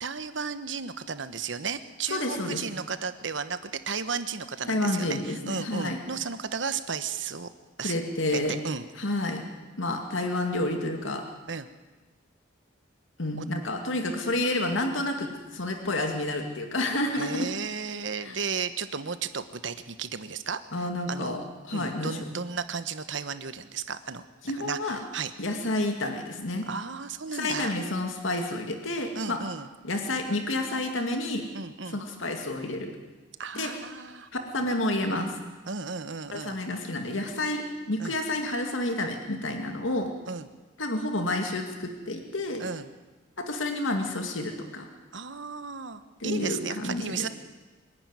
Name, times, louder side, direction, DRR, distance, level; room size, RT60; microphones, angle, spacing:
voice 1, 0.0-7.5 7.8-7.9 8.5-8.8 11.5-11.7 17.1-21.4 21.7-24.2 24.6-25.3 26.7-27.7 29.1-29.7 31.5-32.0 33.4-34.3 35.7-36.6 38.0-38.1 40.3-40.5 42.6-42.9 45.1-47.3, right 5 dB, 75° right, 11 dB, 1.2 m, -34 dB
voice 2, 2.1-2.6 4.7-6.0 7.8-8.6 9.0-9.4 9.8-11.2 13.2-17.5 18.2-18.4 20.7-22.2 24.4-25.0 25.4-26.7 27.3-29.4 29.8-31.5 31.9-33.0 33.5-33.7 34.3-35.4 36.3-40.1 40.8-42.6 43.4-44.9 46.2-47.3, left 1 dB, 85° left, 4 dB, 2.2 m, -30 dB
25.0 x 11.0 x 9.6 m, 1.2 s
head